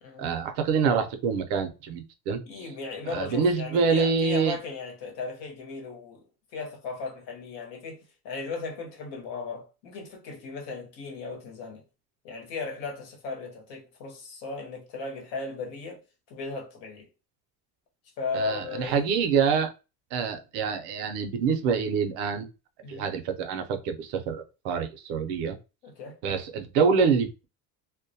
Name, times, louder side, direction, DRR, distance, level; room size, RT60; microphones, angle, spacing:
voice 1, 0.2-2.4 3.1-4.6 18.3-19.7 20.1-22.5 22.9-25.6 26.2-27.4, right 5 dB, 90° right, 0.6 m, -26 dB
voice 2, 2.4-6.2 6.5-11.8 12.2-16.0 16.3-17.1 18.2-19.1 19.4-19.5 22.8-23.1 25.8-26.2, left 4 dB, 75° left, 1.0 m, -36 dB
2.2 x 2.2 x 2.7 m
cardioid pair, 105°, 40 cm